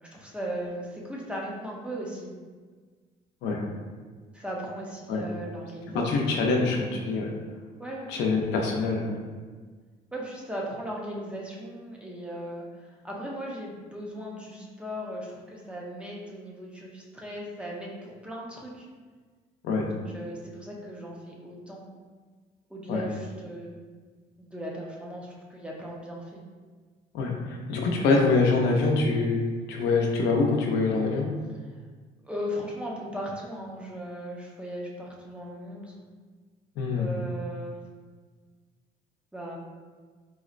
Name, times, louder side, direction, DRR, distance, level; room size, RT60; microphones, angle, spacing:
voice 1, 0.0-2.3 4.3-6.2 7.8-8.1 10.1-18.9 19.9-21.8 22.7-23.8 24.4-26.4 32.2-35.9 37.0-37.8 39.3-39.6, equal, 5° right, -3 dB, 0.5 m, -37 dB
voice 2, 5.9-7.3 8.1-9.1 19.6-19.9 22.9-23.0 27.1-29.4 29.7-31.3 36.8-37.1, left 3 dB, 90° left, 0 dB, 0.6 m, -25 dB
4.0 x 2.0 x 2.4 m, 1.5 s
cardioid pair, 110°, 17 cm